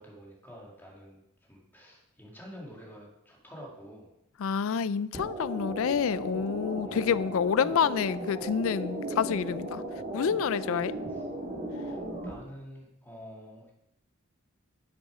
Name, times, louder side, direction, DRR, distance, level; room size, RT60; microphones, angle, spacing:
voice 1, 0.0-4.1 6.8-7.2 10.9-11.2 11.8-13.7, equal, 10° left, 2.1 m, -48 dB
voice 2, 4.4-9.8 10.1-10.9, left 7 dB, 70° left, 0.4 m, -28 dB
sound 1, 5.1-12.3, right 1 dB, 35° right, 3.3 m, -36 dB
10.5 x 7.0 x 4.9 m
head